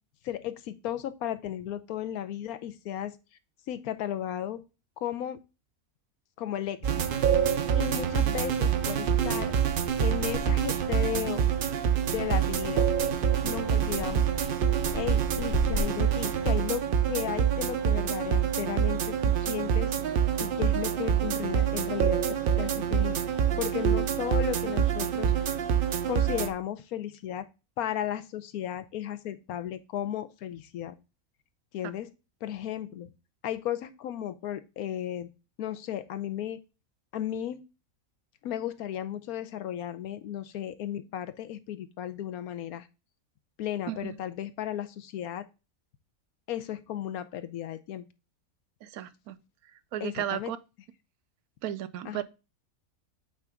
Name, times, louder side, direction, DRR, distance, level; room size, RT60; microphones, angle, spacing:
voice 1, 0.2-3.1 3.7-4.6 5.0-5.4 6.4-6.9 7.8-9.5 10.0-11.4 12.1-12.9 13.4-14.3 14.9-19.9 20.4-22.2 22.6-23.2 23.6-25.3 26.1-27.5 27.8-31.0 31.7-32.1 32.4-33.1 33.4-35.3 35.6-36.6 37.1-37.6 38.4-42.9 43.6-45.5 46.5-48.0 50.0-50.5 52.0-52.2, left 11 dB, 85° left, 1.1 m, -34 dB
sound 1, 6.8-26.5, right 8 dB, 60° right, 0.5 m, -26 dB
sound 2, 8.8-15.8, left 3 dB, 55° left, 1.4 m, -40 dB
voice 2, 43.9-44.2 48.8-49.4 49.9-50.6 51.6-52.2, right 11 dB, 80° right, 1.1 m, -34 dB
8.2 x 3.9 x 3.5 m
omnidirectional pair, 1.5 m